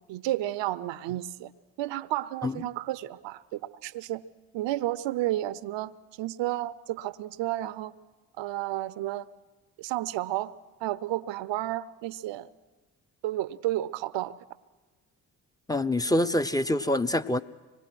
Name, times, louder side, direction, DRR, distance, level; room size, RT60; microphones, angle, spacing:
voice 1, 0.1-1.5 1.8-4.2 4.5-7.9 8.4-9.3 9.8-10.5 10.8-12.5 13.2-14.3, right 15 dB, 60° right, 18 dB, 0.9 m, -32 dB
voice 2, 15.7-17.4, left 1 dB, 10° left, 10 dB, 0.8 m, -25 dB
25.0 x 19.5 x 6.2 m, 1.3 s
figure-of-eight pair, 40°, 49 cm